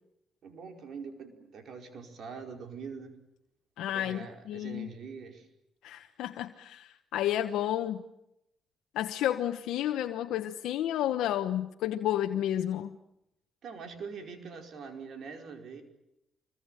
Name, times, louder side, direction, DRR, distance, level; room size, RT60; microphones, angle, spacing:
voice 1, 0.4-3.1 3.9-5.5 13.6-15.8, right 5 dB, 65° right, 4 dB, 5.0 m, -43 dB
voice 2, 3.8-4.9 5.8-8.0 8.9-13.0, left 12 dB, 85° left, 5 dB, 1.1 m, -31 dB
25.0 x 22.5 x 9.2 m, 0.85 s
cardioid pair, 90°, 0 cm